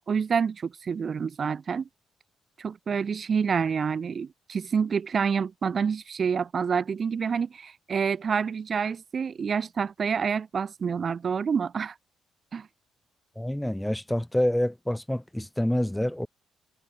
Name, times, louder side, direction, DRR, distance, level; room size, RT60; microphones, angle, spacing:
voice 1, 0.0-1.9 2.6-11.9 12.5-12.7, right 6 dB, 45° right, 4.2 m, -28 dB
voice 2, 13.4-16.3, left 1 dB, 5° left, 6.1 m, -27 dB
cardioid pair, 90°, 0 cm